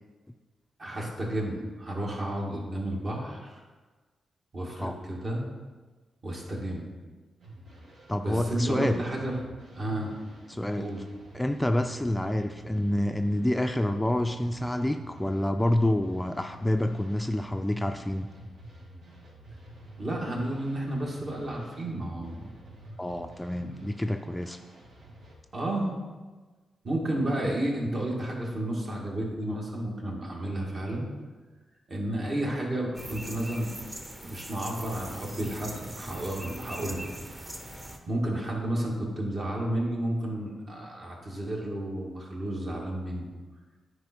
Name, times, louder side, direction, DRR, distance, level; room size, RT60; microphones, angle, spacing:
voice 1, 0.8-3.6 4.5-5.4 6.2-6.9 8.2-9.3 9.7-10.1 10.8-11.0 20.0-22.5 25.5-25.9 26.8-31.1 31.9-33.7 34.2-37.1 38.1-43.3, right 1 dB, 45° right, -2 dB, 2.1 m, -32 dB
sound 1, 7.4-25.3, right 1 dB, 80° right, 2.6 m, -49 dB
voice 2, 8.1-9.0 10.5-10.9 11.3-18.3 23.0-24.6 27.2-27.3, left 1 dB, 10° left, 6 dB, 0.3 m, -28 dB
sound 2, 32.9-38.0, right 1 dB, 20° right, 1.0 m, -41 dB
9.5 x 4.8 x 4.4 m, 1.3 s
cardioid pair, 85°, 0 cm